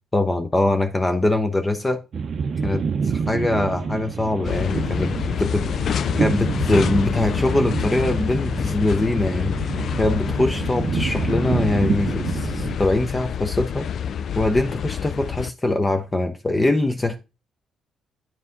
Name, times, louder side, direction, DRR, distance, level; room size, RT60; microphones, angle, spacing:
voice 1, 0.1-2.0 2.6-5.7 6.2-13.9 14.4-17.2, left 2 dB, 20° left, 0.7 m, -23 dB
sound 1, 2.1-12.8, right 6 dB, 50° right, 0.6 m, -28 dB
sound 2, 4.4-15.5, left 8 dB, 60° left, 0.3 m, -27 dB
9.3 x 4.7 x 3.8 m
cardioid pair, 90°, 0 cm